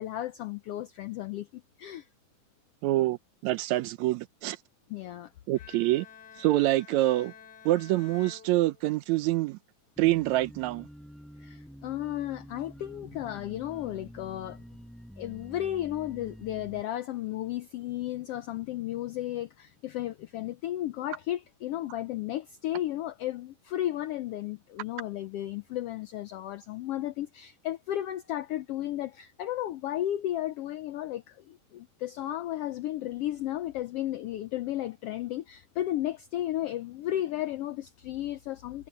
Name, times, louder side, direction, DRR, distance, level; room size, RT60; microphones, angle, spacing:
voice 1, 0.0-2.1 4.9-5.3 11.4-14.6 15.2-38.9, left 13 dB, 80° left, 1.3 m, -34 dB
voice 2, 2.8-3.2 3.4-4.6 5.5-6.1 6.4-7.3 7.7-9.6 10.0-10.9, right 16 dB, 80° right, 1.9 m, -26 dB
Bowed string instrument, 5.6-9.3, left 8 dB, 55° left, 4.7 m, -51 dB
sound 1, 10.0-16.8, equal, ahead, 7.2 m, -48 dB
omnidirectional pair, 3.4 m